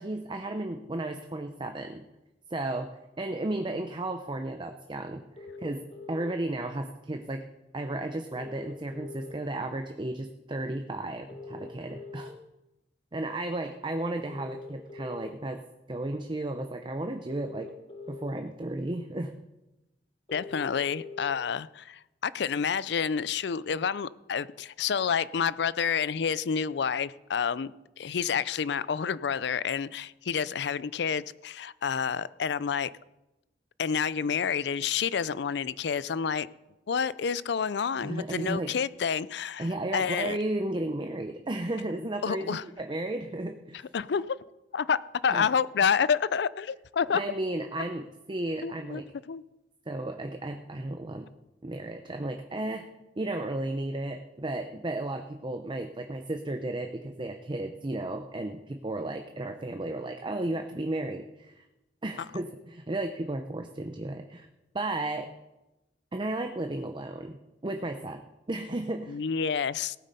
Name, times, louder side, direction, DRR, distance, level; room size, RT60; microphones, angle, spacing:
voice 1, 0.0-2.0 2.5-2.9 3.2-5.2 5.6-5.8 6.1-7.4 7.7-12.3 13.1-15.6 15.9-17.7 18.1-19.3 38.0-38.7 39.6-43.8 45.3-45.4 47.1-49.0 49.9-51.3 51.6-52.9 53.2-61.6 62.0-64.5 64.7-65.3 66.1-68.2 68.5-69.2, right 2 dB, 25° right, 0.7 m, -34 dB
sound 1, 5.4-6.3 8.3-9.3 11.3-12.3 14.3-15.3 17.3-18.3 20.3-21.3, left 3 dB, 35° left, 1.4 m, -43 dB
voice 2, 20.3-32.9 33.8-36.5 36.9-40.4 42.2-42.6 43.9-44.4 44.7-47.2 48.6-49.0 49.3-49.4 69.1-70.0, left 6 dB, 65° left, 0.4 m, -29 dB
18.0 x 8.3 x 5.4 m
head